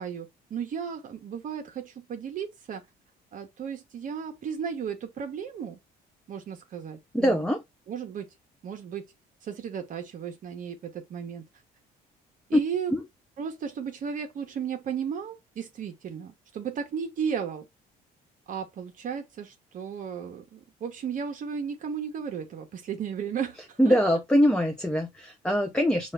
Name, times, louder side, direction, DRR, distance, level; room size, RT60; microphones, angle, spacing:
voice 1, 0.0-2.8 3.3-5.8 6.3-7.4 7.9-8.3 8.6-9.0 9.4-11.4 12.5-12.9 13.4-17.7 18.5-24.2, right 7 dB, 50° right, 0.9 m, -34 dB
voice 2, 7.1-7.6 12.5-12.6 12.9-13.0 23.8-26.1, equal, 5° left, 0.5 m, -23 dB
5.4 x 2.4 x 3.3 m
cardioid pair, 110°, 17 cm